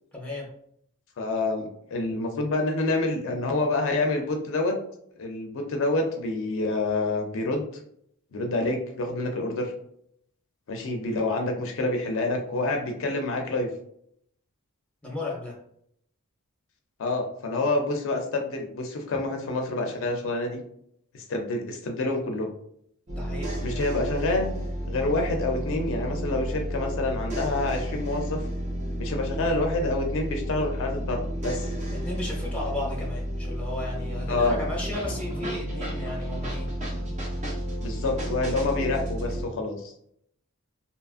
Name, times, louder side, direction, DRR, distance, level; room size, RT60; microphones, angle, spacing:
voice 1, 0.1-0.5 15.0-15.6 23.1-23.6 32.0-36.7 39.5-39.6, left 2 dB, 5° left, -3 dB, 0.6 m, -34 dB
voice 2, 1.2-4.7 5.2-7.7 8.3-9.7 10.7-13.7 17.0-20.6 21.1-22.5 23.6-24.5 24.9-28.4 29.0-31.7 34.3-34.6 37.8-39.9, left 2 dB, 60° left, 3 dB, 0.4 m, -27 dB
sound 1, 23.1-39.4, equal, 30° right, 0.5 m, -31 dB
2.8 x 2.4 x 2.4 m, 0.70 s
head